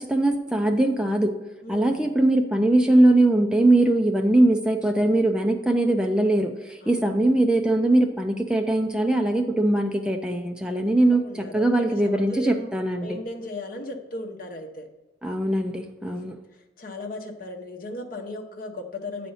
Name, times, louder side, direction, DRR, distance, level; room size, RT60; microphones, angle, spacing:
voice 1, 0.0-1.3 1.7-13.2 15.2-16.4, right 1 dB, 5° right, 4 dB, 0.4 m, -21 dB
voice 2, 1.6-2.1 6.8-7.3 11.2-12.7 13.0-14.9 16.3-19.3, left 1 dB, 45° left, 2 dB, 0.9 m, -36 dB
9.2 x 4.2 x 5.5 m, 1.1 s
head